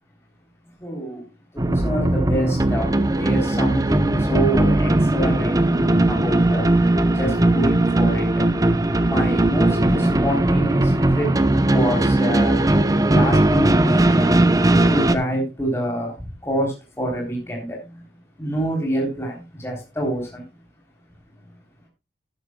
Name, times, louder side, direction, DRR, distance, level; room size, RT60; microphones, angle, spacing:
voice 1, 0.8-1.2 1.5-6.7 7.2-8.5 9.0-11.3 11.7-12.6 13.1-14.4 14.9-16.2 16.4-17.8 18.4-20.4, right 1 dB, 15° left, -1 dB, 3.5 m, -26 dB
sound 1, 1.6-15.2, right 1 dB, 20° right, 0.7 m, -18 dB
13.5 x 12.0 x 2.3 m, 0.27 s
head